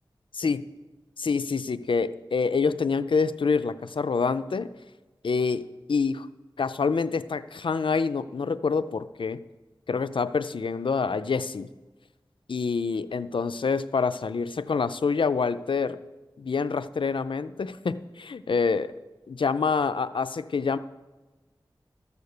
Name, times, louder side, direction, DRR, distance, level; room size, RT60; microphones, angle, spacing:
voice 1, 0.3-0.7 1.2-4.7 5.2-6.3 6.6-9.4 9.9-11.7 12.5-16.0 16.4-18.9 19.3-20.8, left 5 dB, 75° left, 12 dB, 0.4 m, -26 dB
13.0 x 6.7 x 6.6 m, 1.2 s
wide cardioid pair, 70°, 9 cm